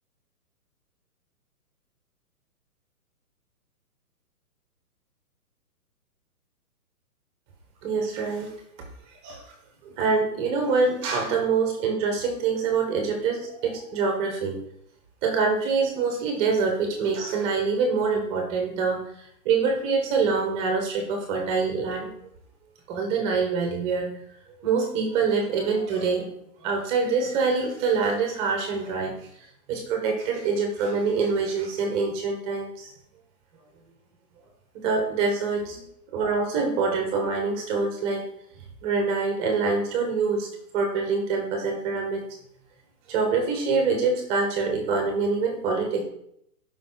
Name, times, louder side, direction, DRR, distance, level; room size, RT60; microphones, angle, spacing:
voice 1, 7.8-8.5 9.1-9.5 9.8-14.6 15.2-22.1 22.9-24.2 24.6-26.3 26.6-29.3 29.7-32.9 34.7-38.3 38.8-40.5 40.7-42.2 43.1-46.0, right 4 dB, 15° right, 3 dB, 1.1 m, -25 dB
11.5 x 5.5 x 3.9 m, 0.74 s
hypercardioid pair, 165°, 46 cm